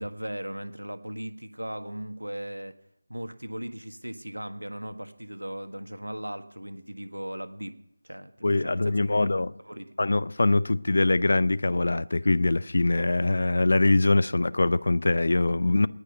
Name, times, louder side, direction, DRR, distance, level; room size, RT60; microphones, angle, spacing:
voice 1, 0.0-2.7 3.1-7.8 8.0-9.3 9.6-9.9, right 1 dB, 90° right, 1.5 m, -37 dB
voice 2, 8.4-9.5 10.0-15.9, left 2 dB, 60° left, 0.6 m, -23 dB
19.0 x 6.4 x 9.3 m
figure-of-eight pair, 165°, 0 cm